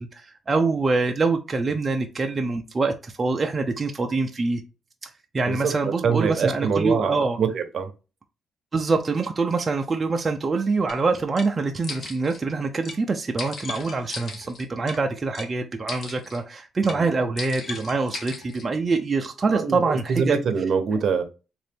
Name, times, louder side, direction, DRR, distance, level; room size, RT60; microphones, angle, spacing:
voice 1, 0.1-4.6 5.0-7.4 8.7-20.4, right 3 dB, 30° right, 0.5 m, -25 dB
voice 2, 5.5-7.9 16.9-17.1 19.5-21.2, right 6 dB, 60° right, 0.8 m, -24 dB
sound 1, 10.9-11.0 11.4-11.5 11.8-12.4 12.8-13.0 13.4-15.0 15.3-15.5 15.9-16.4 16.8-17.0 17.4-18.6, left 4 dB, 55° left, 1.1 m, -36 dB
3.8 x 2.6 x 3.5 m
cardioid pair, 90°, 0 cm